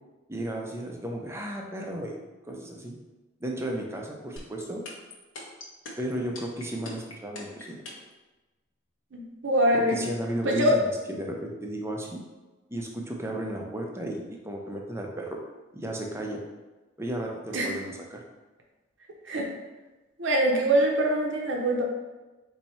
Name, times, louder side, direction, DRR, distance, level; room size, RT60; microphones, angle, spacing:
voice 1, 0.3-2.2 2.4-3.0 3.4-4.8 6.0-7.8 9.7-12.2 12.7-15.4 15.7-16.4 17.0-18.2, right 1 dB, 15° right, 0 dB, 0.5 m, -34 dB
sound 1, 4.4-8.1, left 2 dB, 80° left, 1.0 m, -40 dB
voice 2, 9.1-10.0 10.4-10.8 17.5-17.7 19.3-19.5 20.2-21.8, right 1 dB, 65° right, 0 dB, 0.6 m, -24 dB
4.3 x 2.7 x 4.2 m, 1.1 s
head